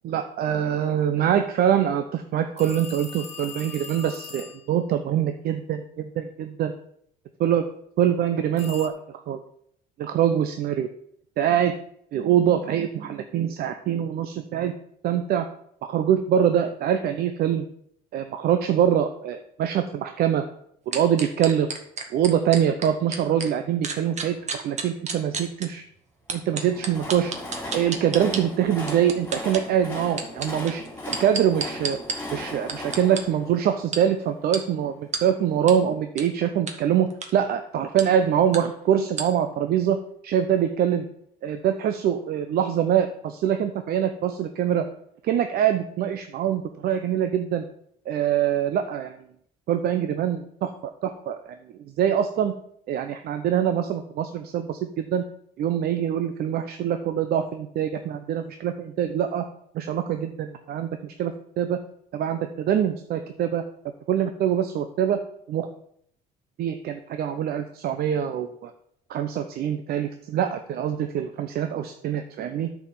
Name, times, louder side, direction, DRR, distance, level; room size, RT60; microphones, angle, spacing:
voice 1, 0.0-6.7 7.4-7.7 8.0-8.9 9.3-9.4 10.0-10.9 11.4-11.7 12.1-14.7 15.0-15.4 15.8-17.6 18.1-20.4 20.9-21.7 22.1-25.8 26.3-27.3 27.7-30.8 31.1-32.0 32.3-41.1 41.4-44.9 45.2-47.6 48.1-49.1 49.7-50.7 51.0-51.5 52.0-52.5 52.9-55.2 55.6-59.4 59.7-61.8 62.1-63.6 64.1-65.2 65.5-65.7 66.6-68.7 69.1-72.7, right 9 dB, 65° right, 8 dB, 0.8 m, -24 dB
sound 1, 2.6-4.7 8.6-8.9, left 6 dB, 40° left, 1.4 m, -40 dB
sound 2, 20.9-23.5 23.8-25.7 26.3-28.4 28.9-29.6 30.1-32.2 32.7-33.2 33.9-34.0 34.5-34.6 35.1-35.2 35.7-35.8 36.2-36.3 36.7-36.8 37.1-37.3 38.0-38.1 38.5-38.6 39.2-39.3, right 5 dB, 45° right, 1.5 m, -30 dB
Train, 26.4-34.6, left 1 dB, 10° left, 3.1 m, -38 dB
8.9 x 4.9 x 7.3 m, 0.69 s
cardioid pair, 110°, 17 cm